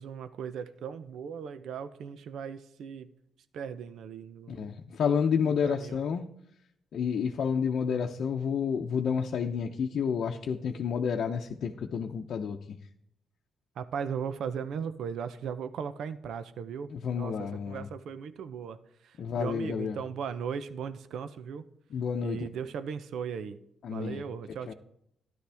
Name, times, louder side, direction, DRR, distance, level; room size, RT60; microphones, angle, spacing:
voice 1, 0.0-3.1 3.5-4.7 5.6-6.0 13.8-18.8 19.0-21.6 22.2-23.6 23.9-24.7, right 7 dB, 75° right, 12 dB, 0.7 m, -37 dB
voice 2, 4.5-6.2 6.9-12.6 16.9-17.9 19.2-20.0 21.9-22.5 23.8-24.2 24.7-24.8, left 6 dB, 65° left, 2 dB, 0.7 m, -30 dB
13.0 x 11.0 x 3.5 m, 0.75 s
cardioid pair, 95°, 0 cm